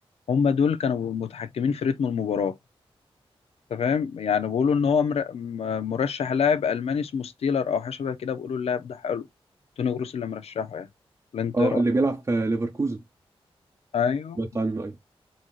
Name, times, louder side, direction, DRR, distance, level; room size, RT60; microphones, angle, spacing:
voice 1, 0.3-2.5 3.7-9.3 9.8-10.9 11.3-11.8 13.9-14.4, left 6 dB, 85° left, 0.6 m, -26 dB
voice 2, 11.5-13.0 14.4-15.0, right 2 dB, 30° right, 0.7 m, -25 dB
4.0 x 3.2 x 2.4 m
wide cardioid pair, 85°, 10 cm